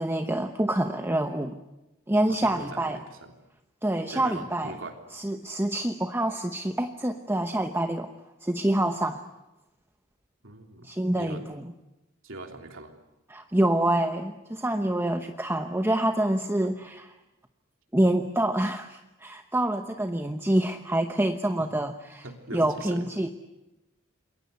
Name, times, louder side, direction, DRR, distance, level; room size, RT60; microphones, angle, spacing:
voice 1, 0.0-1.6 2.1-3.0 3.8-4.8 5.1-8.1 8.4-9.3 10.8-11.6 13.3-17.1 17.9-22.3 22.5-23.3, right 1 dB, 10° right, 6 dB, 1.0 m, -26 dB
voice 2, 2.3-3.3 4.1-5.0 10.4-10.9 11.1-11.5 12.2-12.9 21.6-21.7 22.2-23.1, right 2 dB, 70° right, 4 dB, 3.4 m, -41 dB
27.5 x 22.5 x 8.1 m, 0.97 s
head